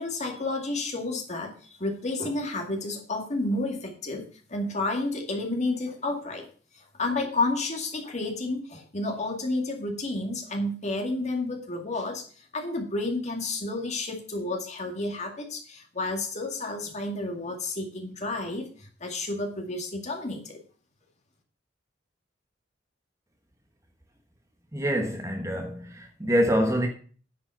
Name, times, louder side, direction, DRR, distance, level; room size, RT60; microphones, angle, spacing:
voice 1, 0.0-6.5 6.7-20.6, left 2 dB, 40° left, 2.1 m, -31 dB
voice 2, 24.7-26.9, equal, 15° right, 1.1 m, -25 dB
10.0 x 5.5 x 6.9 m
head